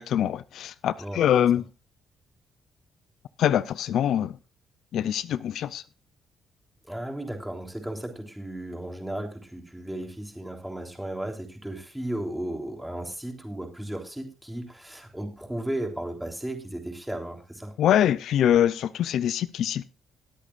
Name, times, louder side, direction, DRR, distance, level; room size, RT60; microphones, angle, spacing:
voice 1, 0.0-1.7 3.4-4.4 4.9-5.8 17.8-19.8, left 10 dB, 75° left, 0.4 m, -24 dB
voice 2, 6.9-17.7, right 1 dB, 5° right, 3.4 m, -35 dB
21.5 x 8.4 x 2.5 m
cardioid pair, 90°, 0 cm